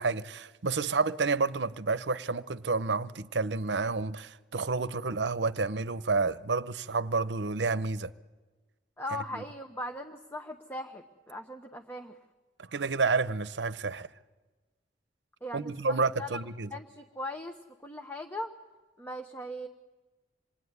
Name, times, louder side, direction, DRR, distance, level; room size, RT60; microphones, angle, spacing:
voice 1, 0.0-8.1 12.7-14.1 15.5-16.7, right 4 dB, 75° right, 0.8 m, -30 dB
voice 2, 9.0-12.2 15.4-16.4 16.7-18.5 19.0-19.7, left 1 dB, 15° left, 1.0 m, -39 dB
26.5 x 21.0 x 9.7 m
head